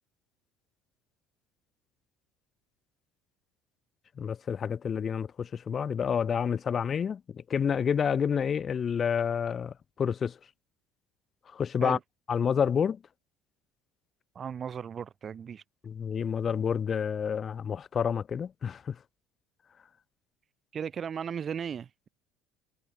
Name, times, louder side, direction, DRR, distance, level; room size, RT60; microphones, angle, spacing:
voice 1, 4.2-10.4 11.5-12.0 12.3-13.0 15.8-19.0, left 7 dB, 40° left, 1.3 m, -29 dB
voice 2, 14.4-15.6 20.7-22.1, right 7 dB, 40° right, 1.8 m, -36 dB
hypercardioid pair, 60°, 0 cm